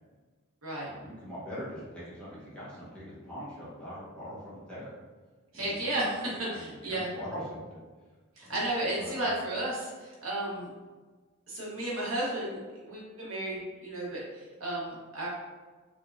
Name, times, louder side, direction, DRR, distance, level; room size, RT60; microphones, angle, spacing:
voice 1, 0.8-4.9 5.5-5.9 6.5-7.8 8.4-8.5 9.0-9.3, equal, 5° left, -9 dB, 1.1 m, -42 dB
voice 2, 5.5-7.1 8.4-10.7 11.5-15.3, right 1 dB, 75° right, -6 dB, 1.2 m, -33 dB
3.6 x 3.4 x 2.6 m, 1.4 s
head